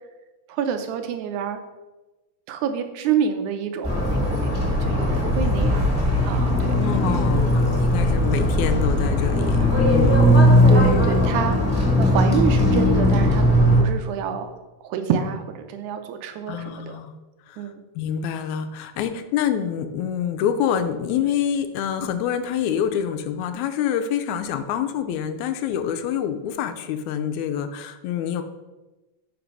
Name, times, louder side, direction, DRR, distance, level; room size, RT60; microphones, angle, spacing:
voice 1, 0.5-1.6 2.5-5.8 6.2-6.8 10.7-14.5 14.8-17.0 17.6-17.8, right 7 dB, 85° right, 7 dB, 2.1 m, -28 dB
sound 1, 3.8-13.8, left 1 dB, 5° right, 1.4 m, -18 dB
voice 2, 6.8-10.3 16.5-17.1 17.5-17.6 18.0-28.4, left 8 dB, 85° left, 7 dB, 1.9 m, -26 dB
5.1 x 5.0 x 6.0 m, 1.1 s
omnidirectional pair, 3.3 m